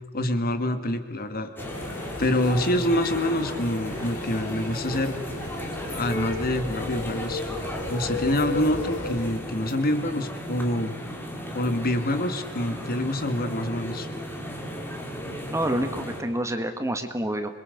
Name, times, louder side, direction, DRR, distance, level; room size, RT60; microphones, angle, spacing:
voice 1, 0.1-1.5 2.2-5.2 5.9-7.4 7.9-10.9 11.5-14.1, left 1 dB, 45° left, 9 dB, 1.7 m, -26 dB
sound 1, 1.6-9.3, left 2 dB, 80° left, 6.7 m, -35 dB
sound 2, 1.6-16.2, equal, 10° left, 3.7 m, -35 dB
voice 2, 15.5-17.5, right 1 dB, 15° right, 7 dB, 1.6 m, -28 dB
27.0 x 22.5 x 6.5 m, 1.2 s
head